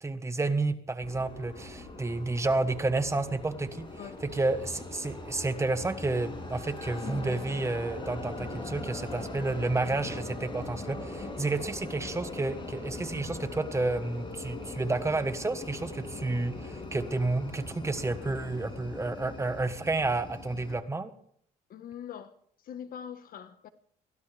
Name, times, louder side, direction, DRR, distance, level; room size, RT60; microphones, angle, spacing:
voice 1, 0.0-3.9 4.2-21.1, right 2 dB, 15° right, 1.4 m, -30 dB
sound 1, 1.0-20.7, left 2 dB, 30° left, 6.3 m, -41 dB
voice 2, 21.7-22.3 22.6-23.7, left 8 dB, 60° left, 1.4 m, -42 dB
23.0 x 16.0 x 3.5 m
cardioid pair, 110°, 17 cm